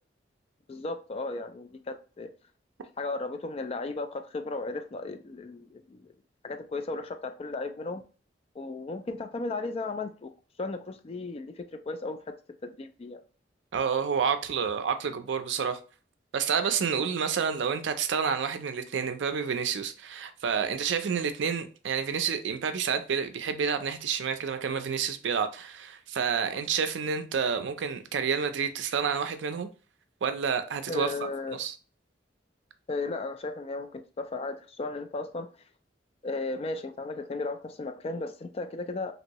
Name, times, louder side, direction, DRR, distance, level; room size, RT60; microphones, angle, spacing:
voice 1, 0.7-2.3 3.0-6.1 6.4-8.0 8.6-10.3 10.6-12.2 12.6-13.2 30.9-31.6 32.9-35.5 36.2-39.1, left 3 dB, 35° left, 0.3 m, -35 dB
voice 2, 13.7-15.8 16.3-29.7 30.2-31.7, right 6 dB, 70° right, 0.4 m, -29 dB
2.9 x 2.6 x 2.9 m
head